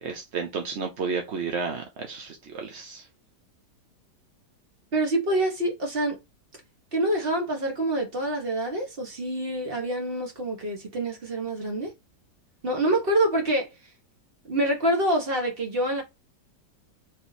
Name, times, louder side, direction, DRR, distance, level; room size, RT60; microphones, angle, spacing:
voice 1, 0.0-3.1, right 5 dB, 55° right, 0.8 m, -32 dB
voice 2, 4.9-6.2 6.9-11.9 12.6-13.7 14.5-16.0, right 1 dB, 35° right, 1.6 m, -26 dB
4.2 x 3.0 x 4.1 m
omnidirectional pair, 1.9 m